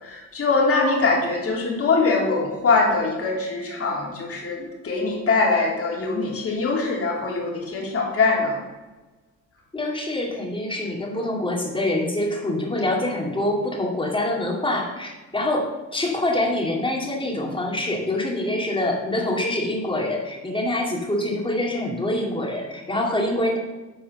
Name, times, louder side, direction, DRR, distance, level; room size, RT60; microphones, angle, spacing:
voice 1, 0.0-8.6, left 3 dB, 50° left, -2 dB, 3.0 m, -22 dB
voice 2, 9.7-15.7 15.9-23.6, left 1 dB, 15° left, -1 dB, 2.4 m, -25 dB
8.6 x 4.8 x 6.4 m, 1.2 s
cardioid pair, 90°, 30 cm